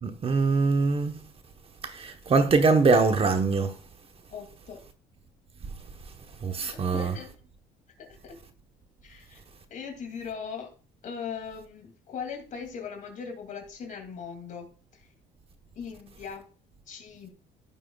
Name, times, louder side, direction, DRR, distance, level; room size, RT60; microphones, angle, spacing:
voice 1, 0.0-1.1 1.9-3.7 6.4-7.1, right 4 dB, 35° right, 1.0 m, -23 dB
voice 2, 4.3-4.8 6.9-7.3 8.0-8.4 9.0-9.4 9.7-10.7 11.0-15.1 15.8-16.4 16.9-17.3, left 6 dB, 50° left, 2.4 m, -39 dB
15.5 x 5.6 x 2.3 m
cardioid pair, 110°, 17 cm